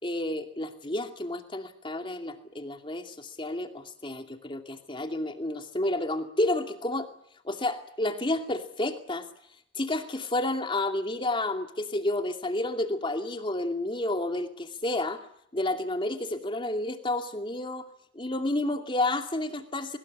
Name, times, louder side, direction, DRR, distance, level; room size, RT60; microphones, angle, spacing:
voice 1, 0.0-7.1 7.4-9.3 9.7-15.2 15.5-17.9 18.1-20.0, left 1 dB, 25° left, 5 dB, 2.5 m, -30 dB
23.0 x 21.0 x 9.7 m, 0.70 s
head